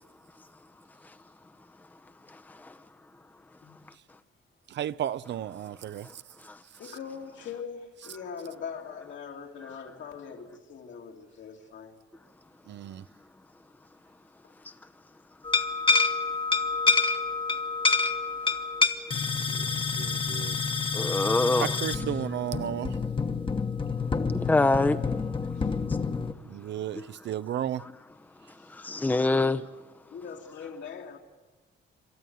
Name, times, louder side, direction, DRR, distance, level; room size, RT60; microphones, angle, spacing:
voice 1, 2.3-2.7 6.4-6.6 20.9-21.8 24.3-25.0 28.7-29.6, left 2 dB, 10° left, 0.7 m, -25 dB
voice 2, 4.7-6.2 6.8-7.0 12.7-13.0 19.5-20.6 21.6-23.0 26.4-27.8, right 11 dB, 65° right, 0.6 m, -34 dB
voice 3, 6.8-11.9 25.6-25.7 30.1-31.2, left 6 dB, 70° left, 2.4 m, -41 dB
sound 1, 15.4-26.3, left 4 dB, 25° left, 1.2 m, -28 dB
27.0 x 13.0 x 9.4 m
cardioid pair, 90°, 20 cm